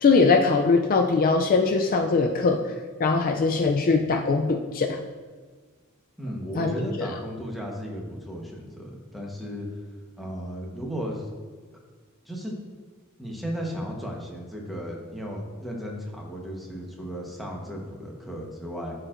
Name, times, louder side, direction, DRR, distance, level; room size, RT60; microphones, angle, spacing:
voice 1, 0.0-2.6 3.0-5.0 6.6-7.1, left 4 dB, 45° left, 4 dB, 0.4 m, -21 dB
voice 2, 6.2-9.7 10.2-11.3 12.2-12.6 13.2-18.9, equal, ahead, -2 dB, 1.1 m, -35 dB
12.0 x 4.5 x 2.5 m, 1.5 s
head